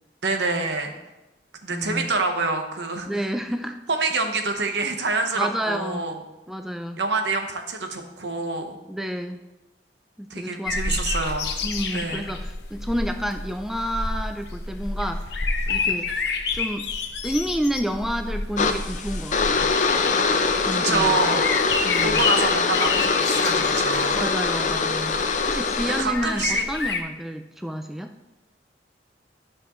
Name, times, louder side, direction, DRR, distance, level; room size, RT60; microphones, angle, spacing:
voice 1, 0.2-0.9 1.6-3.3 3.9-6.1 7.0-8.8 10.3-11.5 11.9-12.3 20.7-21.4 22.0-24.2 26.0-26.6, right 3 dB, 75° right, 5 dB, 1.0 m, -26 dB
voice 2, 1.7-2.1 3.1-3.8 5.3-6.1 6.5-7.0 8.9-9.4 10.2-11.1 11.6-15.3 15.7-16.1 16.5-16.8 17.2-19.7 20.6-21.2 21.8-22.2 24.1-28.1, equal, ahead, 6 dB, 0.3 m, -30 dB
sound 1, 10.7-27.0, left 4 dB, 70° left, 0.9 m, -29 dB
sound 2, 18.6-26.0, left 4 dB, 45° left, 0.5 m, -23 dB
12.0 x 6.1 x 3.1 m, 1.0 s
head